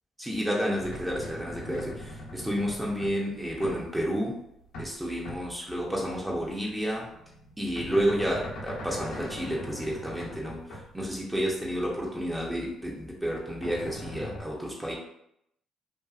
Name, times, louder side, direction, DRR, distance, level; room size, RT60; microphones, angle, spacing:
voice 1, 0.2-4.4 4.8-7.1 7.6-14.9, equal, 10° right, -3 dB, 0.6 m, -30 dB
sound 1, 0.8-5.0 5.2-5.7 6.5-12.5 12.9-14.4, left 1 dB, 80° left, 0.8 m, -42 dB
2.7 x 2.3 x 2.3 m, 0.77 s
supercardioid pair, 70°, 0 cm